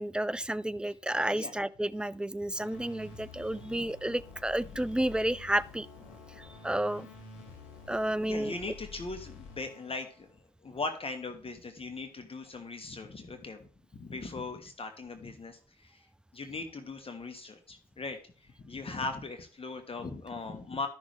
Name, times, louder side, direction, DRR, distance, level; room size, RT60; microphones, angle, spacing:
voice 1, 0.0-5.9 6.4-7.1 7.9-8.5, right 1 dB, 5° right, 0.4 m, -31 dB
sound 1, 2.5-10.3, left 4 dB, 75° left, 2.0 m, -49 dB
voice 2, 8.2-16.1 16.3-20.9, left 3 dB, 30° left, 1.3 m, -39 dB
12.5 x 6.2 x 3.2 m
hypercardioid pair, 50°, 18 cm